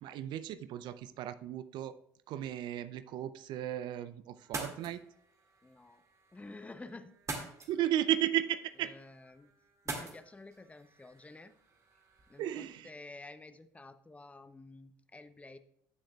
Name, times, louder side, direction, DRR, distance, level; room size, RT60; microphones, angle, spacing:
voice 1, 0.0-1.9 2.3-5.0 7.7-8.9 12.4-12.9, right 12 dB, 60° right, 14 dB, 0.5 m, -34 dB
sound 1, 4.4-12.8, right 3 dB, 35° right, 2.0 m, -46 dB
voice 2, 5.6-6.0 6.3-7.1 8.8-9.5 9.8-11.5 12.3-15.6, left 2 dB, 15° left, 11 dB, 0.7 m, -51 dB
14.5 x 6.2 x 2.3 m, 0.71 s
hypercardioid pair, 65°, 9 cm